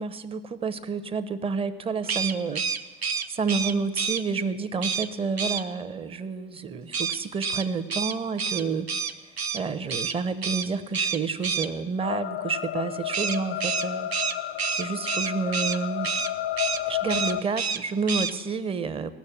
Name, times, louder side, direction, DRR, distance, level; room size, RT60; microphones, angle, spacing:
voice 1, 0.0-2.6 3.3-8.9 9.5-14.1 14.7-16.1 16.9-19.1, right 4 dB, 20° right, 13 dB, 0.7 m, -29 dB
sound 1, 2.0-4.2 4.8-5.1 5.4-5.6 6.9-9.6 9.9-10.1 10.4-10.7 10.9-11.7 13.1-15.8 16.0-16.3 16.6-16.8 17.1-17.8 18.1-18.3, right 6 dB, 85° right, 0.6 m, -28 dB
sound 2, 12.0-17.4, left 12 dB, 40° left, 0.4 m, -31 dB
17.5 x 6.5 x 8.4 m, 1.3 s
figure-of-eight pair, 75°, 31 cm